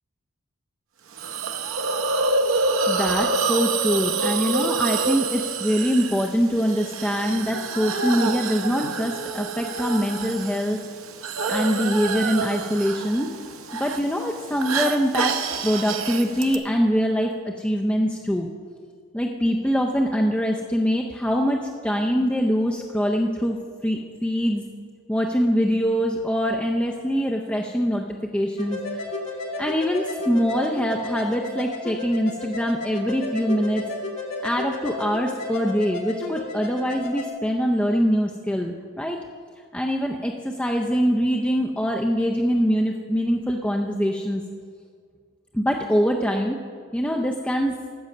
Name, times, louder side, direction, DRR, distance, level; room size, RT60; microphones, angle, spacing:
Hiss, 1.2-16.6, right 4 dB, 65° right, 0.7 m, -27 dB
voice 1, 2.9-10.8 11.5-13.3 13.7-15.3 15.6-18.5 19.1-23.6 23.8-24.6 25.1-29.0 29.6-33.8 34.4-39.2 39.7-44.4 45.5-46.6 46.9-47.8, equal, 5° left, 1 dB, 0.5 m, -23 dB
sound 1, 28.6-37.3, left 2 dB, 65° left, 2.1 m, -32 dB
14.0 x 6.1 x 6.7 m, 2.1 s
head